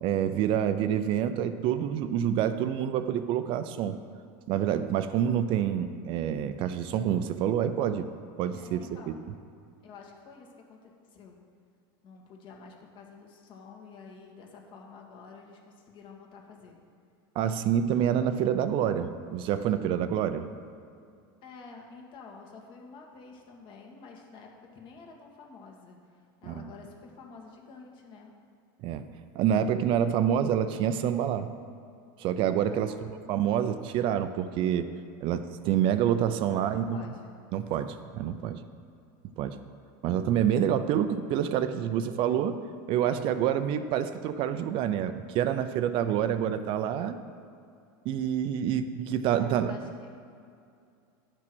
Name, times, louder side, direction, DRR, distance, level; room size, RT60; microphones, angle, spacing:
voice 1, 0.0-4.0 4.5-8.1 8.4-9.1 17.4-20.5 26.4-26.7 28.8-29.0 29.3-31.5 32.2-32.9 33.3-34.9 35.2-37.0 37.5-38.6 39.4-39.6 40.0-42.6 42.9-47.2 48.0-49.7, right 9 dB, 45° right, 10 dB, 0.5 m, -27 dB
voice 2, 8.5-9.2 9.8-11.4 12.0-16.8 21.4-28.3 32.7-33.3 36.5-37.4 49.3-50.1, left 4 dB, 45° left, 0 dB, 1.9 m, -49 dB
11.0 x 6.0 x 6.1 m, 2.4 s
supercardioid pair, 125°, 12 cm